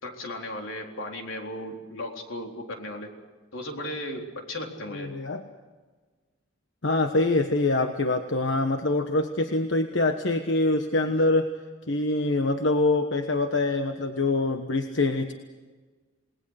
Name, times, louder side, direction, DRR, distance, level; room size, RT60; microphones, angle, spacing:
voice 1, 0.0-3.1 3.5-5.1 11.1-11.2, left 1 dB, 90° left, 2 dB, 3.9 m, -36 dB
voice 2, 4.9-5.4 6.8-11.5 11.9-15.3, left 2 dB, 65° left, 6 dB, 1.3 m, -24 dB
28.5 x 19.5 x 6.5 m, 1.4 s
head